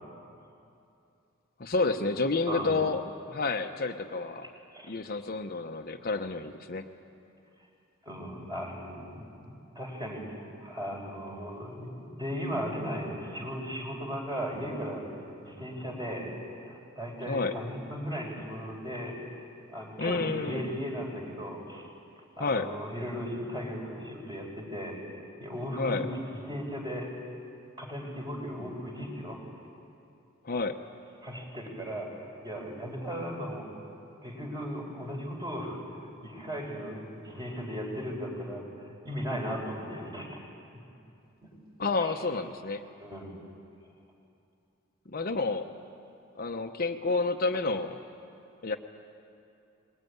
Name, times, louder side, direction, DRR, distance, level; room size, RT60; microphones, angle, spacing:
voice 1, 1.6-3.0 3.3-4.5 4.9-6.9 17.3-17.5 20.0-20.7 22.4-22.7 25.8-26.1 30.4-30.8 41.8-42.8 45.1-45.7 46.4-48.0 48.6-48.8, left 3 dB, 45° left, 5 dB, 1.0 m, -29 dB
voice 2, 4.4-4.9 8.0-15.1 15.4-16.3 16.6-19.2 19.7-21.9 22.4-25.0 25.4-27.2 27.8-29.4 31.2-33.7 34.2-40.4 41.4-41.5 42.0-42.1 43.0-43.3, equal, 20° right, 0 dB, 4.7 m, -37 dB
23.0 x 21.5 x 9.5 m, 2.7 s
head